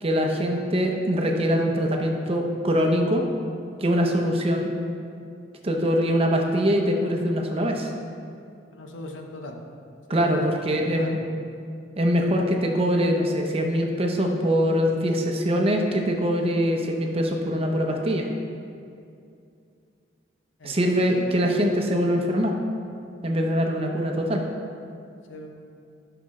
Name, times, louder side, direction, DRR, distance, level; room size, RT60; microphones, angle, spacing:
voice 1, 0.0-3.2 3.8-4.7 5.6-7.9 10.1-11.2 12.0-18.3 20.6-22.6 23.2-24.4, equal, 30° right, 2 dB, 0.8 m, -23 dB
voice 2, 8.7-9.5 10.1-10.2 10.7-11.2 20.6-20.8 21.0-21.2 25.3-25.5, left 1 dB, 85° left, 3 dB, 0.8 m, -40 dB
11.0 x 5.9 x 3.2 m, 2.4 s
head